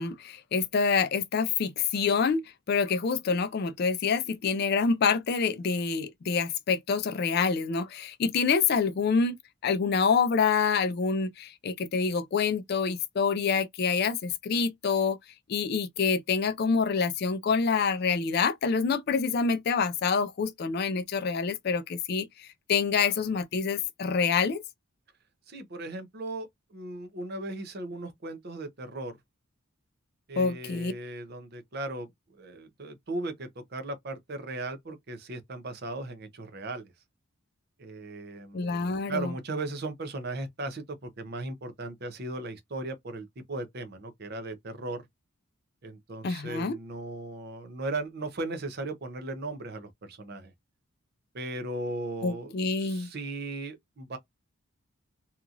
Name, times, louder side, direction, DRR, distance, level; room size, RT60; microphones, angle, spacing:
voice 1, 0.0-2.4 2.7-9.4 9.6-15.2 15.5-24.6 30.4-30.9 38.5-39.3 46.2-46.8 52.2-53.1, left 5 dB, 45° left, 0.3 m, -27 dB
voice 2, 25.5-29.1 30.3-36.9 37.8-45.0 45.8-50.5 51.3-54.2, right 2 dB, 45° right, 0.6 m, -37 dB
2.8 x 2.4 x 2.5 m
head